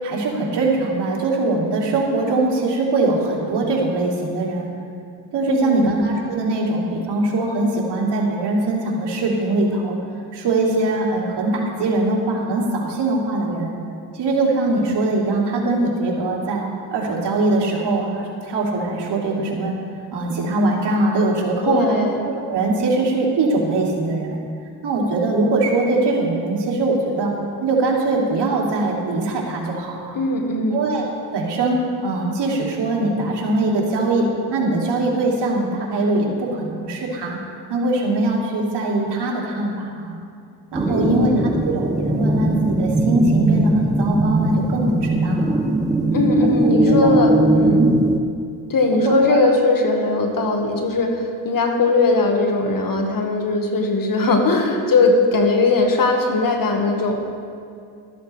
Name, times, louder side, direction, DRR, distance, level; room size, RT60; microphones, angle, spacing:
voice 1, 0.0-4.7 5.3-10.0 10.3-13.7 14.2-19.7 20.1-22.0 22.4-24.4 24.8-27.3 27.6-30.2 30.7-31.1 31.3-37.4 37.7-40.2 40.7-45.6 46.4-47.3 47.7-47.9 48.9-49.5, right 2 dB, 65° right, -2 dB, 2.8 m, -22 dB
voice 2, 5.5-5.9 21.6-22.2 30.1-30.9 40.9-41.5 46.1-47.9 48.7-57.2, left 2 dB, 50° left, 3 dB, 1.7 m, -19 dB
sound 1, 40.7-48.2, right 1 dB, 10° right, 0.6 m, -19 dB
13.5 x 13.5 x 3.4 m, 2.4 s
cardioid pair, 75°, 43 cm